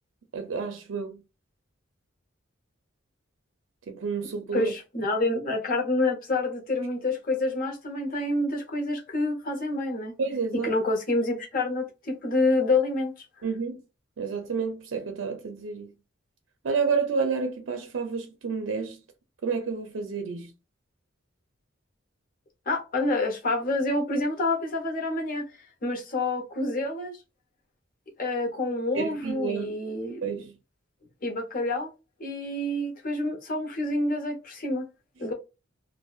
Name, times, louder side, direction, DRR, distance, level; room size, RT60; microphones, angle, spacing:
voice 1, 0.3-1.2 3.9-4.7 10.2-10.7 13.4-13.8 14.2-15.9 16.6-19.0 19.4-20.5 28.9-29.7 30.2-30.6, right 5 dB, 70° right, 0.5 m, -30 dB
voice 2, 4.5-10.1 10.5-13.1 22.7-25.5 25.8-27.1 28.2-30.2 31.2-31.9 32.2-34.8 35.2-35.3, left 2 dB, 45° left, 0.8 m, -27 dB
2.5 x 2.1 x 2.3 m
head